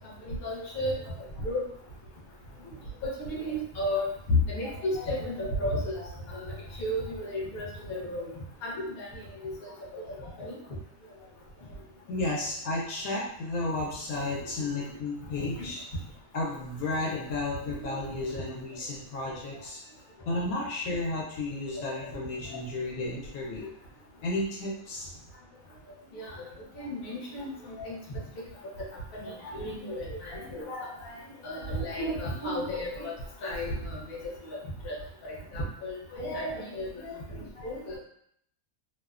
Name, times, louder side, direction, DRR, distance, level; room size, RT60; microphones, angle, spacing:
voice 1, 0.2-1.0 1.4-1.6 3.0-4.1 4.5-8.3 8.6-10.0 10.4-10.6 15.3-15.4 17.8-18.0 21.8-21.9 23.6-23.7 26.1-26.3 26.8-28.0 28.6-28.7 29.1-31.1 31.4-33.1 33.4-34.2 34.4-34.6 34.8-35.0 35.2-38.0, equal, 50° left, -5 dB, 0.9 m, -34 dB
voice 2, 12.1-15.8 16.3-19.8 20.3-23.7 24.2-25.1, left 2 dB, 75° left, -3 dB, 1.0 m, -32 dB
2.7 x 2.1 x 2.3 m, 0.68 s
omnidirectional pair, 1.6 m